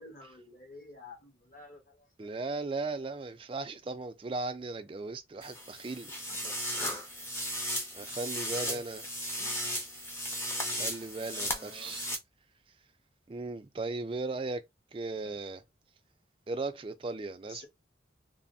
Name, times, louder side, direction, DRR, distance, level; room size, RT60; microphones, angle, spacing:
voice 1, 0.0-2.1 6.3-6.6 8.5-8.8 9.4-9.6 11.2-12.0 14.3-14.5 15.2-15.4 17.5-17.7, left 2 dB, 45° left, 1.1 m, -51 dB
voice 2, 2.2-6.1 7.9-9.0 10.7-12.1 13.3-14.7 14.9-15.6 16.5-17.7, right 3 dB, 30° right, 0.3 m, -37 dB
sound 1, 5.4-12.2, equal, 15° left, 0.6 m, -36 dB
3.2 x 2.0 x 2.6 m
head